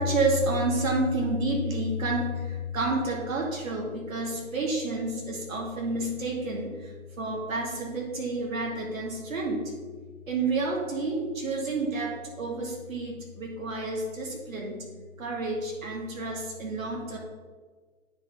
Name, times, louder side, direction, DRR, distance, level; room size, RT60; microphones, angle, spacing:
voice 1, 0.0-6.9 7.2-9.6 10.3-14.8 15.2-17.2, right 2 dB, 75° right, -1 dB, 2.3 m, -29 dB
9.4 x 5.2 x 3.7 m, 1.4 s
figure-of-eight pair, 135°, 41 cm